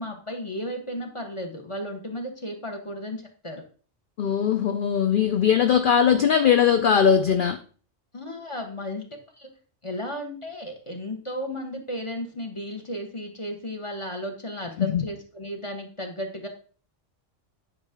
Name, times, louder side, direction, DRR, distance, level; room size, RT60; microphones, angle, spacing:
voice 1, 0.0-3.6 8.1-9.0 9.4-9.5 9.8-16.5, equal, 25° left, 1.3 m, -34 dB
voice 2, 4.2-7.6 14.8-15.0, left 8 dB, 55° left, 0.6 m, -20 dB
9.5 x 4.9 x 3.6 m
omnidirectional pair, 1.2 m